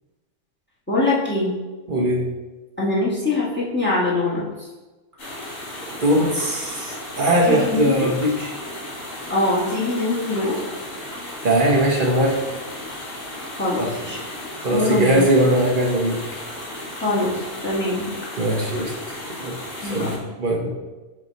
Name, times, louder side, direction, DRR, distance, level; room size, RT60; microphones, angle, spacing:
voice 1, 0.9-1.5 2.8-4.4 7.5-8.1 9.3-10.6 13.6-14.2 14.7-15.2 17.0-18.1 19.8-20.2, left 2 dB, 10° left, -6 dB, 1.5 m, -23 dB
voice 2, 1.9-2.2 6.0-8.5 11.4-12.4 13.8-13.9 14.6-16.2 18.4-18.9 19.3-19.6 19.8-20.7, right 1 dB, 45° right, -1 dB, 0.9 m, -20 dB
sound 1, 5.2-20.2, left 1 dB, 70° left, 2.4 m, -35 dB
6.5 x 2.9 x 5.2 m, 1.2 s
omnidirectional pair, 1.5 m